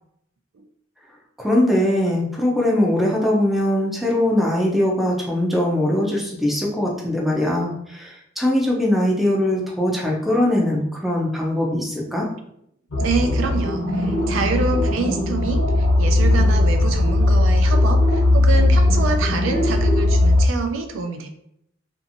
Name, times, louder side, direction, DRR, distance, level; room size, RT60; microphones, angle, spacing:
voice 1, 1.4-12.3, left 1 dB, ahead, -3 dB, 0.5 m, -21 dB
sound 1, 12.9-20.5, left 1 dB, 75° left, 1.1 m, -18 dB
voice 2, 13.0-21.3, right 4 dB, 70° right, 6 dB, 0.4 m, -26 dB
2.7 x 2.5 x 2.6 m, 0.74 s
head